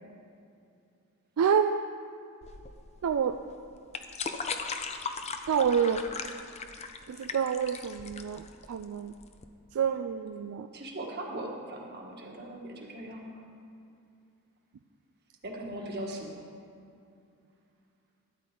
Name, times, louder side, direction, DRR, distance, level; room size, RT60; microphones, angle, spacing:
voice 1, 1.4-1.8 3.0-3.4 5.5-6.0 7.1-9.1 9.7-10.7, right 7 dB, 70° right, 7 dB, 0.4 m, -28 dB
sound 1, 2.4-9.4, left 5 dB, 30° left, 0.5 m, -38 dB
voice 2, 10.7-13.4 15.4-16.4, right 1 dB, 45° right, 0 dB, 1.5 m, -39 dB
12.5 x 10.0 x 3.8 m, 2.5 s
head